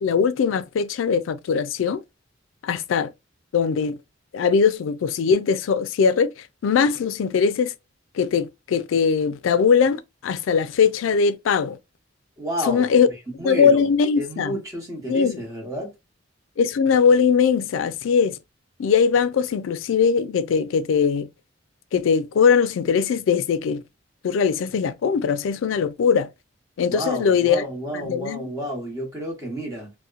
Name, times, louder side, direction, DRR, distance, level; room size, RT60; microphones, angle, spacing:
voice 1, 0.0-2.0 2.6-3.1 3.5-4.0 4.3-6.3 6.6-7.7 8.2-11.8 12.7-13.1 13.4-14.6 15.1-15.4 16.6-18.4 18.8-21.3 21.9-23.8 24.2-26.3 26.8-27.6 27.9-28.5, left 6 dB, 80° left, 0.3 m, -20 dB
voice 2, 12.4-12.9 13.4-13.9 14.2-15.9 26.9-29.9, equal, 15° right, 0.9 m, -31 dB
2.7 x 2.1 x 2.4 m
head